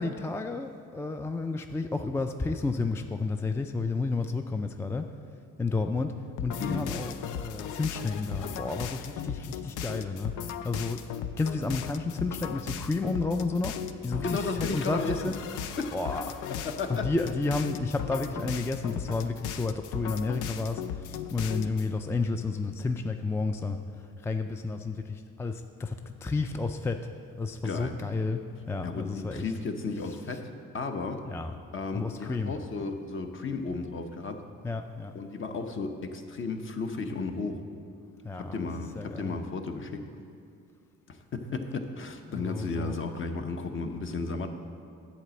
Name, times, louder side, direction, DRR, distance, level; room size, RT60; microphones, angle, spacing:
voice 1, 0.0-5.1 5.6-6.1 6.4-11.0 11.4-13.7 14.0-15.4 15.9-25.9 26.2-27.0 27.4-28.4 28.7-29.5 31.3-31.5 31.9-32.5 34.6-35.1 38.2-38.6 39.0-39.4 42.2-43.0, left 3 dB, 10° left, 6 dB, 0.3 m, -31 dB
sound 1, 6.4-21.9, left 8 dB, 85° left, 0.5 m, -37 dB
voice 2, 14.2-15.2 15.8-16.0 16.6-17.1 27.6-28.0 28.8-31.2 31.7-34.4 35.1-37.6 38.3-40.0 41.1-44.5, left 4 dB, 40° left, 6 dB, 0.8 m, -34 dB
9.9 x 4.2 x 7.5 m, 2.5 s
cardioid pair, 90°, 30 cm